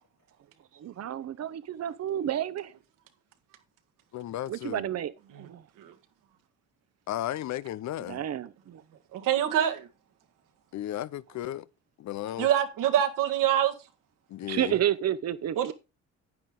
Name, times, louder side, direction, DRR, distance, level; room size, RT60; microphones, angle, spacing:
voice 1, 0.8-2.7 4.5-5.6 8.0-8.8 14.5-15.7, right 11 dB, 50° right, 0.9 m, -31 dB
voice 2, 4.1-4.8 7.1-8.2 10.7-11.7 12.0-12.5 14.3-14.8, left 13 dB, 60° left, 0.6 m, -34 dB
voice 3, 9.1-9.9 12.4-13.7 15.6-15.7, right 10 dB, 75° right, 1.7 m, -25 dB
9.5 x 9.2 x 3.7 m
supercardioid pair, 80°, 32 cm